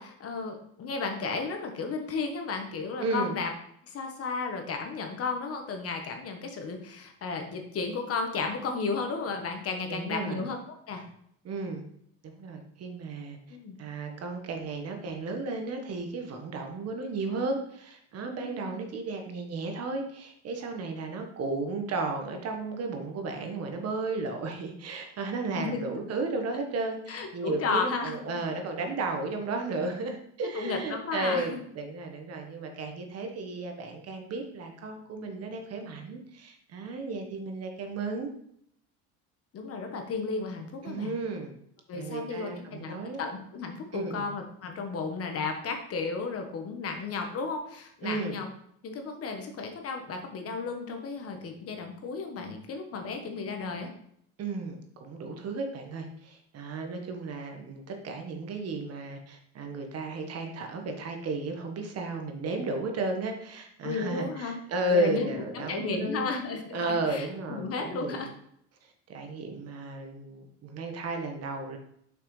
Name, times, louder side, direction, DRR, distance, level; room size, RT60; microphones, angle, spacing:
voice 1, 0.0-3.5 3.8-10.6 10.9-11.1 13.5-13.8 18.4-18.7 25.5-26.0 27.1-28.1 30.5-31.6 39.5-41.2 41.9-48.5 48.8-53.9 63.8-64.5 64.9-68.3, left 4 dB, 45° left, 4 dB, 1.4 m, -34 dB
voice 2, 3.0-3.4 9.9-10.4 11.4-11.8 12.4-13.4 13.8-38.3 40.8-41.5 41.9-43.2 43.9-44.3 48.0-48.4 54.4-66.3 66.7-68.2 69.1-71.8, right 3 dB, 50° right, 3 dB, 1.5 m, -34 dB
6.6 x 5.9 x 3.3 m, 0.69 s
supercardioid pair, 100°, 32 cm